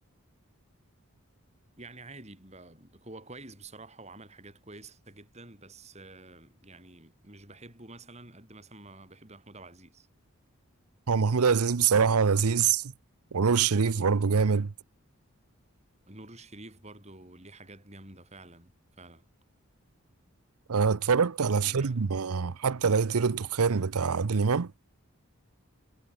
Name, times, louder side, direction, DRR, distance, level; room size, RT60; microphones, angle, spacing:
voice 1, 1.8-10.1 16.1-19.2 21.6-22.0, right 2 dB, 30° right, 6.5 m, -49 dB
voice 2, 11.1-12.9 13.3-14.7 20.7-24.7, right 5 dB, 90° right, 0.7 m, -25 dB
head